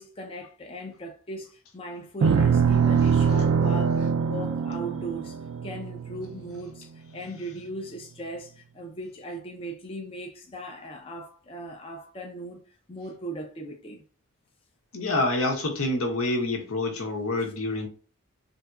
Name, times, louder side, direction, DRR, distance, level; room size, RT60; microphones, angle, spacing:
voice 1, 0.0-12.6 12.9-14.0 17.4-17.5, right 1 dB, 25° left, 0.4 m, -38 dB
sound 1, 2.2-6.6, right 6 dB, 90° right, 0.3 m, -23 dB
voice 2, 14.9-17.9, left 2 dB, 80° left, 0.9 m, -27 dB
3.5 x 2.7 x 2.3 m
head